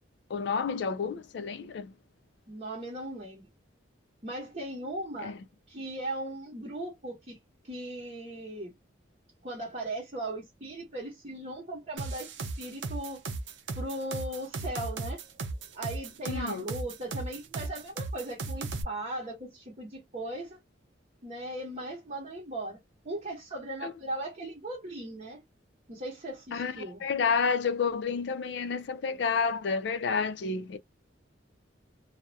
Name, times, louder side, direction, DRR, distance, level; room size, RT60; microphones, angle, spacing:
voice 1, 0.3-1.9 5.2-5.4 16.3-16.6 23.8-23.9 26.5-26.7 27.0-30.8, left 5 dB, 60° left, 0.4 m, -30 dB
voice 2, 2.5-3.5 4.2-5.3 5.7-7.4 7.6-8.8 9.4-13.2 13.7-15.2 15.7-20.6 21.2-22.8 23.0-25.4 25.9-27.0, right 1 dB, 40° right, 0.8 m, -38 dB
sound 1, 12.0-18.8, right 3 dB, 70° right, 0.5 m, -36 dB
2.3 x 2.0 x 2.6 m
head